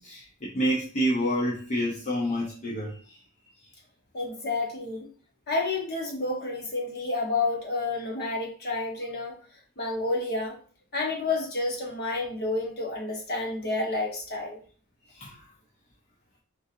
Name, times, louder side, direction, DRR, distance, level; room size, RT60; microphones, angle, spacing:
voice 1, 0.0-3.2 15.1-15.4, equal, 35° left, -3 dB, 0.5 m, -28 dB
voice 2, 4.1-5.1 5.5-9.4 9.8-10.5 10.9-14.6, left 3 dB, 50° left, 0 dB, 1.0 m, -30 dB
3.8 x 2.7 x 2.5 m, 0.41 s
head